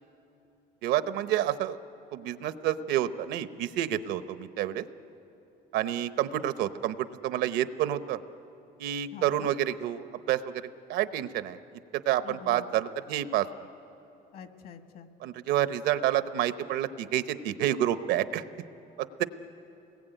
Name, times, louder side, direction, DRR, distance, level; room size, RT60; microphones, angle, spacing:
voice 1, 0.8-1.8 2.1-4.8 5.7-8.2 8.8-10.6 10.9-11.6 11.9-13.5 15.2-18.4 19.0-19.2, right 12 dB, 90° right, 12 dB, 0.9 m, -29 dB
voice 2, 9.1-9.5 12.2-12.7 14.3-15.1 19.2-19.3, left 7 dB, 65° left, 7 dB, 1.8 m, -46 dB
29.0 x 20.5 x 9.1 m, 3.0 s
cardioid pair, 110°, 17 cm